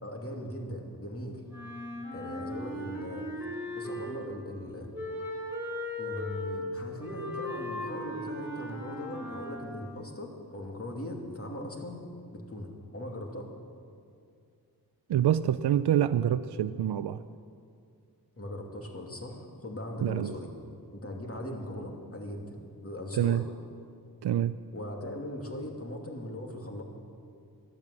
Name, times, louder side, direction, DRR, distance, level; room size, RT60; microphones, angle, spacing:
voice 1, 0.0-1.4 2.1-3.3 3.7-4.9 6.0-13.5 18.4-20.5 20.9-23.4 24.7-26.8, left 1 dB, 35° left, 1 dB, 2.6 m, -39 dB
Wind instrument woodwind instrument, 1.5-4.4 4.9-9.8, left 1 dB, 5° right, 4.0 m, -37 dB
voice 2, 15.1-17.2 20.0-20.3 23.1-23.4 24.2-24.6, right 10 dB, 75° right, 12 dB, 0.5 m, -26 dB
12.5 x 12.0 x 8.2 m, 2.3 s
cardioid pair, 50°, 39 cm